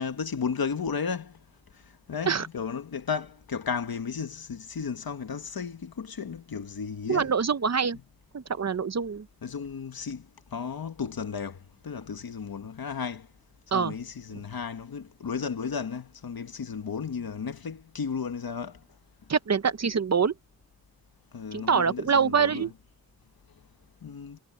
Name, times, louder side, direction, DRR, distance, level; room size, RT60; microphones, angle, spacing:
voice 1, 0.0-1.4 2.1-7.3 9.4-10.3 10.5-13.3 13.7-18.8 21.3-22.7 24.0-24.4, left 6 dB, 85° left, 1.7 m, -34 dB
voice 2, 7.1-8.0 8.3-9.3 13.7-14.0 14.3-14.4 19.3-20.3 21.5-22.7, right 6 dB, 45° right, 0.8 m, -25 dB
wide cardioid pair, 120°, 36 cm